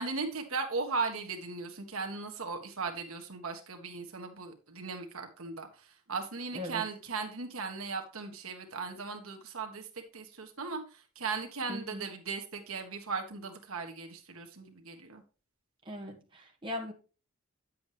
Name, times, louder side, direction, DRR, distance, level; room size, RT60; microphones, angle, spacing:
voice 1, 0.0-15.2, right 4 dB, 75° right, 1.6 m, -37 dB
voice 2, 6.5-6.8 11.7-12.1 15.8-16.9, left 1 dB, 25° right, 1.6 m, -39 dB
9.8 x 7.7 x 3.2 m
head